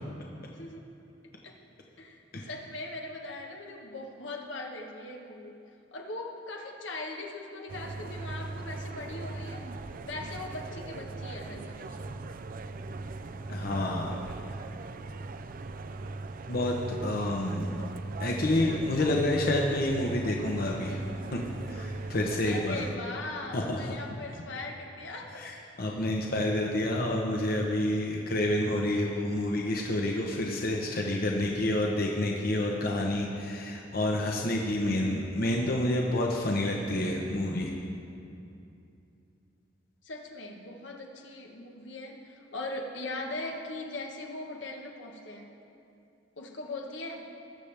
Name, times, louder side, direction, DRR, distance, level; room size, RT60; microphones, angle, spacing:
voice 1, 0.5-0.8 1.4-1.6 2.0-5.6 5.9-9.7 10.0-12.1 22.4-25.5 40.0-45.5 46.4-47.3, left 2 dB, 80° left, 1 dB, 1.2 m, -40 dB
sound 1, 7.7-23.0, right 3 dB, 50° right, 0.4 m, -39 dB
voice 2, 13.5-14.2 16.5-17.8 18.2-21.0 21.3-21.4 21.7-22.8 23.5-23.9 25.4-37.7, left 1 dB, 55° left, 0 dB, 0.9 m, -29 dB
20.5 x 7.1 x 3.4 m, 2.7 s
head